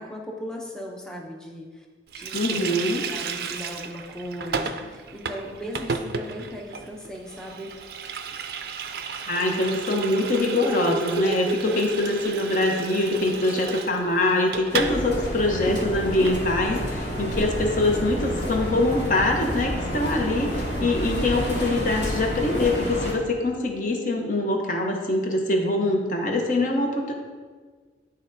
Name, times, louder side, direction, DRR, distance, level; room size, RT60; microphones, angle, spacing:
voice 1, 0.0-1.9 2.1-2.8 3.1-7.7 12.4-12.5, equal, 5° left, -1 dB, 0.6 m, -37 dB
Water tap faucet, 2.1-15.0 15.3-15.4 15.7-16.4, right 5 dB, 55° right, 0.4 m, -32 dB
voice 2, 2.3-3.0 9.2-27.1, left 2 dB, 45° left, 2 dB, 0.8 m, -24 dB
sound 1, 14.7-23.1, equal, 70° left, 1.5 m, -29 dB
11.0 x 4.0 x 2.6 m, 1.5 s
head